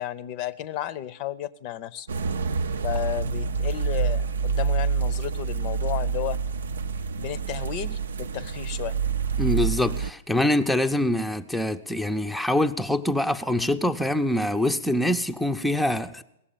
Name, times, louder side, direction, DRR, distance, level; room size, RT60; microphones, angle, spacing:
voice 1, 0.0-2.1 2.8-6.4 7.2-9.0, left 13 dB, 45° left, 0.6 m, -33 dB
sound 1, 2.1-10.1, right 5 dB, 75° right, 0.5 m, -27 dB
voice 2, 9.4-16.2, left 1 dB, ahead, 0.6 m, -24 dB
18.0 x 7.2 x 8.7 m
hypercardioid pair, 110°, 0 cm